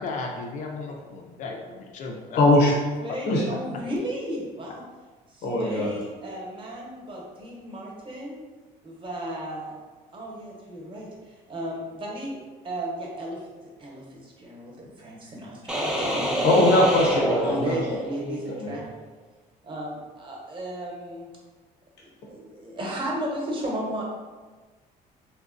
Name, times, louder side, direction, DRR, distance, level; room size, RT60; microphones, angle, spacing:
voice 1, 0.0-2.4, left 3 dB, 50° left, 1 dB, 0.4 m, -35 dB
voice 2, 2.4-2.7 3.3-3.4 5.4-5.9 16.4-17.8 18.2-18.8, left 1 dB, 75° left, -2 dB, 0.7 m, -21 dB
voice 3, 3.0-4.8 5.3-8.4 8.8-9.8 10.1-12.4 12.6-16.7 17.4-18.9 19.6-21.3 22.0-24.0, right 1 dB, 30° right, -2 dB, 0.8 m, -34 dB
sound 1, 15.7-18.3, equal, 5° right, 0.5 m, -27 dB
3.9 x 2.1 x 2.4 m, 1.3 s
cardioid pair, 110°, 17 cm